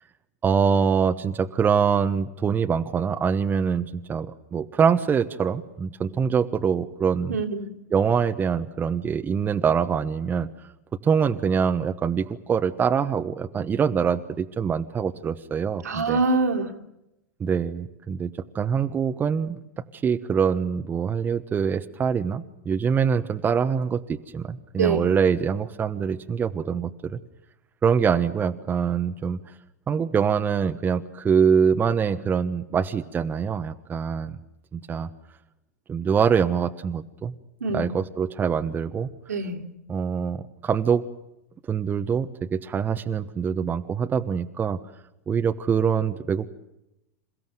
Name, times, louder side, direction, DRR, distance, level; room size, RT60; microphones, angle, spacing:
voice 1, 0.4-7.4 7.9-10.5 11.0-16.2 17.4-19.6 19.9-27.2 27.8-29.4 29.9-34.4 34.7-35.1 35.9-37.3 37.7-39.1 39.9-41.0 41.7-44.8 45.3-46.5, right 6 dB, 20° right, 8 dB, 1.1 m, -24 dB
voice 2, 7.3-7.7 15.8-16.7 24.8-25.1 37.6-37.9 39.3-39.6, right 3 dB, 80° right, 3 dB, 3.1 m, -24 dB
28.0 x 15.5 x 9.4 m, 0.88 s
figure-of-eight pair, 95°, 9 cm